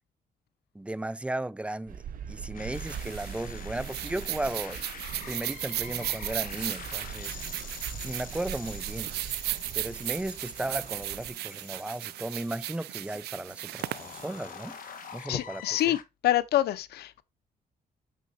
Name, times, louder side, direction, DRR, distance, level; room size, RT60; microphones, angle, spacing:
voice 1, 0.7-2.0 2.3-4.8 5.3-7.4 8.0-9.1 9.7-14.7 15.1-15.9, right 1 dB, 5° right, 0.6 m, -35 dB
sound 1, 1.9-11.3, right 8 dB, 60° right, 0.8 m, -42 dB
sound 2, 2.5-16.0, left 8 dB, 60° left, 1.2 m, -46 dB
sound 3, 2.7-15.2, right 16 dB, 85° right, 0.4 m, -36 dB
voice 2, 15.3-16.0 16.2-17.2, left 13 dB, 85° left, 0.7 m, -26 dB
6.6 x 6.2 x 2.7 m
cardioid pair, 115°, 16 cm